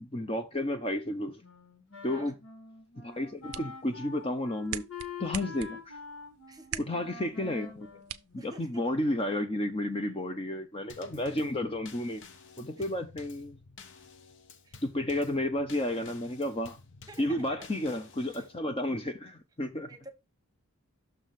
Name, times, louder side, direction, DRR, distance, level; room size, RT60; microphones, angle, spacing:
voice 1, 0.0-1.4 2.0-2.3 3.0-4.8 5.2-6.0 6.8-8.0 8.4-12.2 12.6-13.6 14.8-16.8 17.2-19.9, left 1 dB, 25° left, 0.6 m, -32 dB
Wind instrument woodwind instrument, 1.4-8.9, left 5 dB, 70° left, 2.0 m, -46 dB
sound 1, 3.1-9.1, right 10 dB, 75° right, 0.5 m, -45 dB
voice 2, 6.5-7.0 8.4-8.9 12.8-12.9 14.6-14.8 17.1-17.7 18.3-18.5 19.8-20.1, right 2 dB, 15° right, 1.0 m, -49 dB
Drum kit / Snare drum / Bass drum, 10.9-18.6, left 5 dB, 55° left, 0.8 m, -52 dB
6.4 x 3.5 x 5.7 m
head